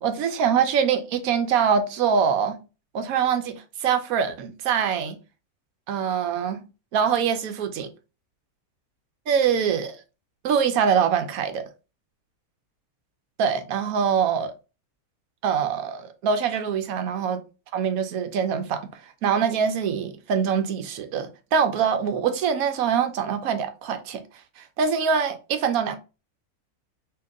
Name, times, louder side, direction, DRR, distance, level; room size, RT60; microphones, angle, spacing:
voice 1, 0.0-2.6 2.9-3.5 3.8-5.2 5.9-6.6 6.9-7.9 9.3-10.0 10.4-11.6 13.4-14.5 15.4-17.4 17.7-24.2 24.6-26.0, right 7 dB, 70° right, 1.0 m, -24 dB
2.9 x 2.8 x 3.6 m
omnidirectional pair, 1.6 m